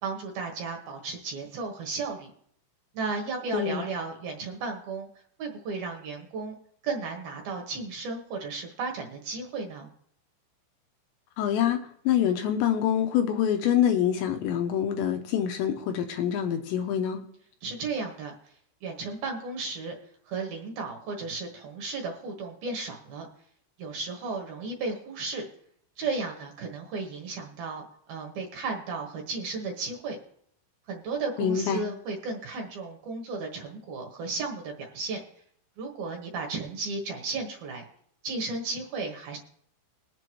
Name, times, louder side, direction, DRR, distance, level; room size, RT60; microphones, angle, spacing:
voice 1, 0.0-2.3 2.9-5.1 5.4-6.6 6.8-9.9 17.6-18.3 18.8-19.9 20.3-23.3 23.8-25.5 26.0-30.2 30.9-35.2 35.8-37.8 38.2-39.4, right 4 dB, 65° right, 2.7 m, -34 dB
voice 2, 3.5-3.8 11.4-11.8 12.1-17.2 31.4-31.8, left 9 dB, 80° left, 2.9 m, -25 dB
21.5 x 7.8 x 3.0 m
omnidirectional pair, 5.5 m